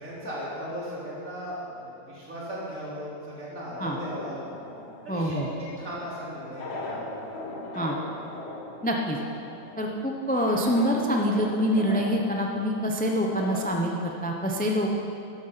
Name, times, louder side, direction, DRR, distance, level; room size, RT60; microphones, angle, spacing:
voice 1, 0.0-4.4 5.0-7.0, equal, 55° right, -7 dB, 4.1 m, -37 dB
sound 1, 3.7-13.7, left 2 dB, 40° left, 1.6 m, -40 dB
voice 2, 5.1-5.5 7.7-8.0 8.8-9.2 9.8-14.9, equal, 10° left, 0 dB, 0.7 m, -26 dB
13.5 x 11.0 x 5.8 m, 2.7 s
omnidirectional pair, 1.7 m